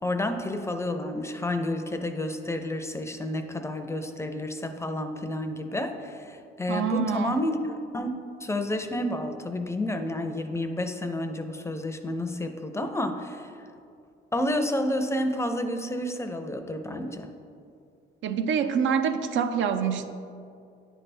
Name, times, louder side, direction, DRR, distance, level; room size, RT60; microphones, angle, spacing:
voice 1, 0.0-13.5 14.3-17.3, left 1 dB, 15° left, 6 dB, 0.5 m, -30 dB
voice 2, 6.7-7.4 18.2-20.1, right 7 dB, 75° right, 8 dB, 0.5 m, -26 dB
9.7 x 3.4 x 4.2 m, 2.4 s
cardioid pair, 90°, 20 cm